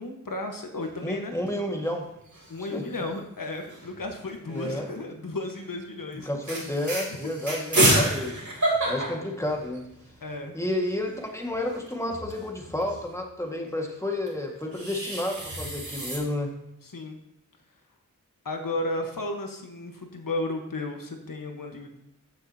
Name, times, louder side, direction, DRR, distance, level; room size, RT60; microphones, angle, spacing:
voice 1, 0.0-1.3 2.5-6.3 7.2-7.3 10.2-10.5 16.8-17.2 18.4-21.9, left 2 dB, 80° left, 3 dB, 1.2 m, -33 dB
sound 1, 0.8-1.5 1.8-1.9 2.2-2.7 3.7-4.9 5.5-5.7 6.1-6.2 6.4-10.1 10.5-10.6 10.7-13.0 14.3-16.2, right 1 dB, 60° right, 3.0 m, -29 dB
voice 2, 1.0-2.0 2.6-2.8 4.5-4.9 6.3-8.4 8.9-9.9 10.5-16.5, left 1 dB, 10° left, 1 dB, 1.7 m, -31 dB
15.0 x 6.3 x 2.8 m, 0.85 s
wide cardioid pair, 65°, 33 cm